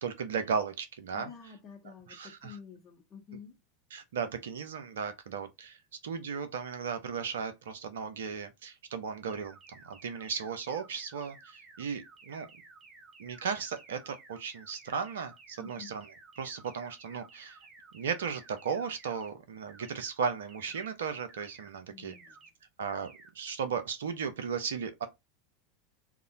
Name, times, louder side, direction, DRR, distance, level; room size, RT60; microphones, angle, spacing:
voice 1, 0.0-1.3 1.8-2.6 3.9-5.8 6.0-12.5 13.2-16.1 16.4-17.6 17.9-22.1 22.8-25.1, right 6 dB, 70° right, 0.5 m, -36 dB
voice 2, 1.1-3.6 15.6-15.9 21.9-22.4, left 6 dB, 35° left, 0.7 m, -49 dB
sound 1, 9.3-19.3 19.7-20.1 20.5-20.9 21.3-21.7 22.1-22.5 22.9-23.3, right 3 dB, 30° right, 0.7 m, -55 dB
2.8 x 2.1 x 2.5 m
figure-of-eight pair, 85°, 0 cm